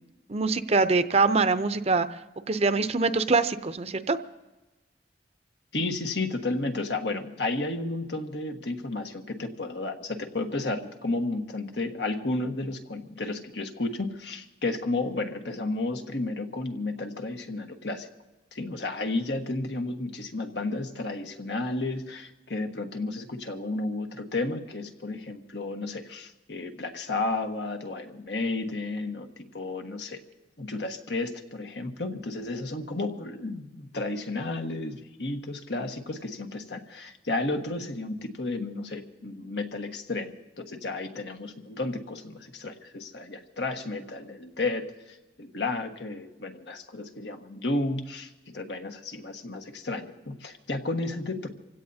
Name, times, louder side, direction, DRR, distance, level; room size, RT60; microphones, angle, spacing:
voice 1, 0.3-2.1 2.5-4.2, right 4 dB, 35° right, 11 dB, 0.6 m, -24 dB
voice 2, 5.7-18.1 18.5-30.2 30.6-51.5, left 2 dB, 75° left, 4 dB, 1.5 m, -32 dB
28.5 x 16.5 x 2.8 m, 1.1 s
head